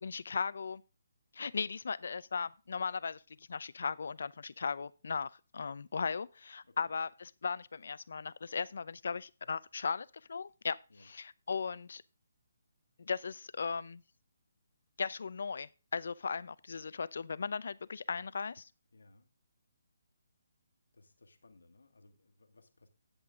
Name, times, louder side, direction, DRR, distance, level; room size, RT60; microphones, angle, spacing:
voice 1, 0.0-0.8 1.3-3.2 3.5-12.0 13.0-14.0 15.0-18.7, left 5 dB, 65° left, 0.6 m, -37 dB
voice 2, 18.9-19.3 20.9-22.9, left 2 dB, 80° left, 1.7 m, -62 dB
10.5 x 7.8 x 3.6 m
hypercardioid pair, 150°, 0 cm